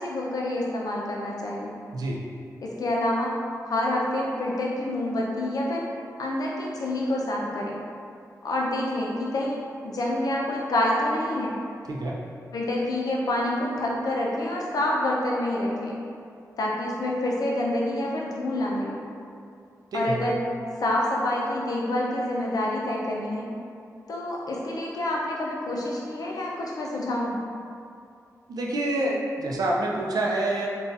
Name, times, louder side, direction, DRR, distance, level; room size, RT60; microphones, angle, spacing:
voice 1, 0.0-1.7 2.6-3.3 3.6-5.8 6.2-7.8 8.4-11.6 12.5-16.0 16.6-19.0 19.9-20.4 20.8-23.5 24.1-27.4, left 1 dB, 75° left, -3 dB, 0.5 m, -27 dB
voice 2, 28.5-30.7, right 1 dB, 75° right, -2 dB, 0.4 m, -27 dB
3.9 x 2.3 x 2.5 m, 2.4 s
wide cardioid pair, 80°, 6 cm